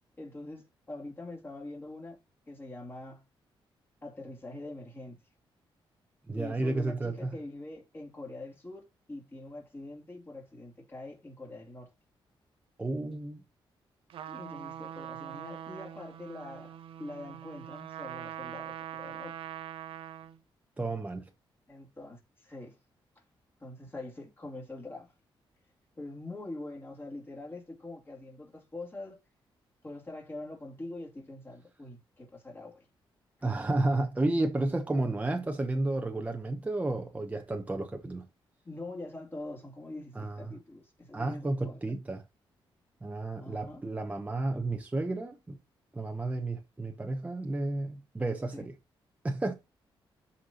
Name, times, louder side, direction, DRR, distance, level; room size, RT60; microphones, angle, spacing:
voice 1, 0.2-2.2 2.5-3.2 4.0-5.2 6.3-11.9 14.3-19.4 21.7-22.8 23.2-23.3 23.6-25.1 26.0-29.2 29.8-32.9 38.6-41.8 43.4-43.8 48.5-48.7, left 2 dB, 25° left, 2.7 m, -44 dB
voice 2, 6.3-7.4 12.8-13.4 20.8-21.3 33.4-38.3 40.1-40.4 41.1-42.2 43.0-45.6 45.9-48.7 49.2-49.5, right 2 dB, 15° right, 0.9 m, -32 dB
Trumpet, 14.1-20.4, right 10 dB, 80° right, 0.7 m, -43 dB
13.0 x 4.3 x 2.9 m
cardioid pair, 120°, 9 cm